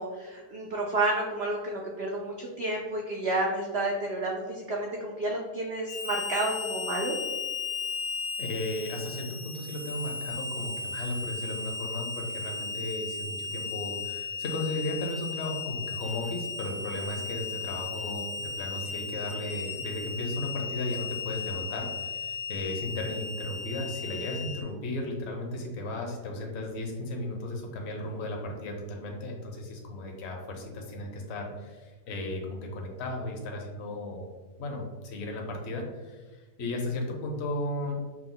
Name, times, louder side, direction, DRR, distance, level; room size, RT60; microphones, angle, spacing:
voice 1, 0.0-7.2, right 2 dB, 80° right, -1 dB, 0.5 m, -30 dB
Harmonica, 5.9-24.6, left 4 dB, 90° left, 1.4 m, -36 dB
voice 2, 8.4-34.3 34.6-38.0, left 2 dB, 50° left, 1 dB, 0.9 m, -35 dB
5.9 x 2.1 x 3.8 m, 1.3 s
omnidirectional pair, 1.8 m